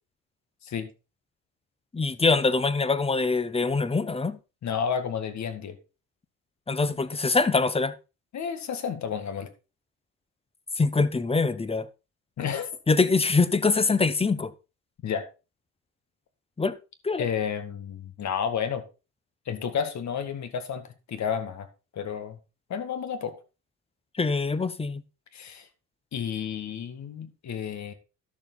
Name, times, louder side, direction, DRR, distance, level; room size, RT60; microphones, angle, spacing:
voice 1, 1.9-4.4 6.7-8.0 10.8-11.9 12.9-14.5 16.6-16.8 17.0-17.2 24.2-25.0, left 4 dB, 15° left, 0.8 m, -24 dB
voice 2, 4.6-5.8 8.3-9.5 12.4-12.7 15.0-15.3 17.2-18.8 19.5-21.7 21.9-22.4 22.7-23.4 25.3-25.7 26.1-27.9, left 7 dB, 50° left, 1.9 m, -31 dB
12.0 x 6.9 x 4.0 m
cardioid pair, 95°, 35 cm